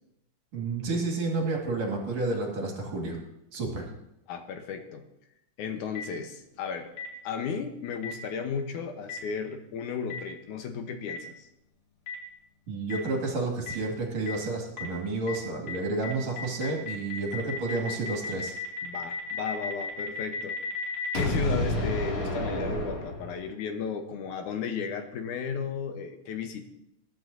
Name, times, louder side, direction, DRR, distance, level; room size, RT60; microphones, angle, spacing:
voice 1, 0.5-3.2 3.5-3.9 12.7-18.5, right 3 dB, 60° right, 0 dB, 3.4 m, -30 dB
voice 2, 4.3-5.0 5.6-6.9 7.2-11.5 18.8-20.6 21.1-26.7, left 6 dB, 80° left, 6 dB, 2.4 m, -34 dB
Boom, 5.9-6.0 7.0-7.1 8.0-8.1 9.1-9.2 10.1-10.2 11.1-11.2 12.1-12.2 12.9-13.0 13.7-13.8 14.3-14.4 14.8-14.9 15.3-15.4 15.7-15.8 16.0-23.6, left 2 dB, 55° left, 3.7 m, -32 dB
21.5 x 11.0 x 2.7 m, 0.83 s
omnidirectional pair, 3.6 m